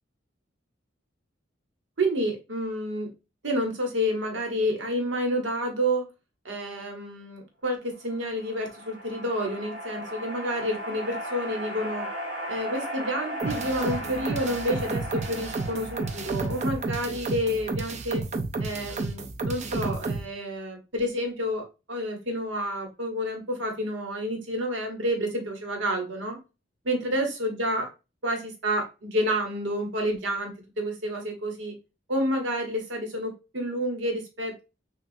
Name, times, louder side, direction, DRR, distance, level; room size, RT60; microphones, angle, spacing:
voice 1, 2.0-3.1 3.4-6.1 6.4-12.1 12.5-18.2 18.6-26.4 26.9-27.9 28.2-31.7 32.1-34.6, equal, 85° right, 1.3 m, -29 dB
sound 1, 8.1-17.6, equal, 55° right, 2.6 m, -37 dB
sound 2, 13.4-20.2, right 3 dB, 40° right, 0.5 m, -31 dB
5.9 x 2.4 x 2.6 m
head